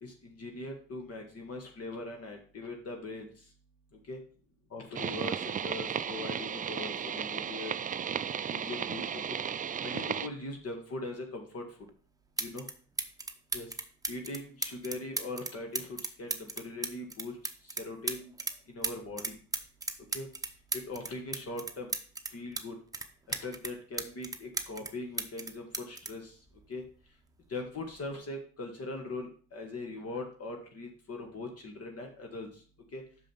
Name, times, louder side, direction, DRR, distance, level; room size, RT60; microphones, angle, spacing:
voice 1, 0.0-3.3 4.1-4.2 4.7-7.7 8.5-9.2 9.8-11.6 12.4-12.7 13.5-13.7 14.1-17.4 17.6-18.3 18.7-19.3 20.1-20.3 20.9-21.9 22.3-22.8 23.3-26.4 26.7-26.8 27.5-32.5 32.9-33.0, left 2 dB, 50° left, 3 dB, 1.8 m, -40 dB
sound 1, 4.9-10.3, right 8 dB, 30° right, 0.4 m, -34 dB
sound 2, 11.9-12.0 12.4-12.7 13.0-18.6 18.8-22.6 22.9-24.9 25.2-27.0 27.9-28.2, right 3 dB, 10° right, 0.8 m, -36 dB
6.2 x 5.1 x 5.6 m, 0.42 s
cardioid pair, 90°, 30 cm